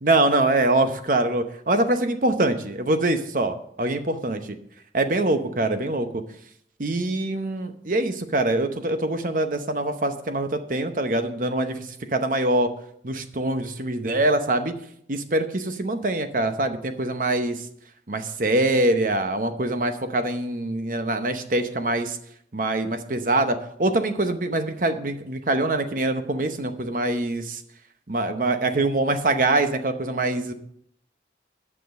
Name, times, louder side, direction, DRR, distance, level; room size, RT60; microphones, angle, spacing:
voice 1, 0.0-4.4 4.9-6.2 6.8-12.7 13.0-14.7 15.1-17.6 18.1-22.2 22.5-27.6 28.1-30.5, right 2 dB, 50° right, 8 dB, 0.8 m, -24 dB
9.5 x 6.1 x 6.4 m, 0.70 s
head